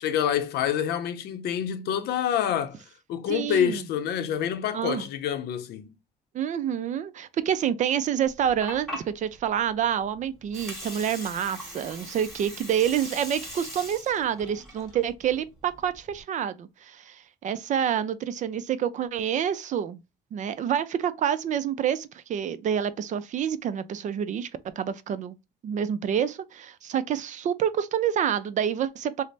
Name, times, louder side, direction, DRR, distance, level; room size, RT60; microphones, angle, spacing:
voice 1, 0.0-2.8 3.1-5.9, left 9 dB, 75° left, 0.6 m, -27 dB
voice 2, 3.3-3.9 4.7-5.1 6.3-20.0 20.3-24.5 24.8-25.4 25.6-29.2, right 9 dB, 45° right, 0.4 m, -28 dB
Water, 8.3-16.2, left 1 dB, ahead, 1.8 m, -41 dB
3.1 x 2.1 x 3.9 m
cardioid pair, 110°, 17 cm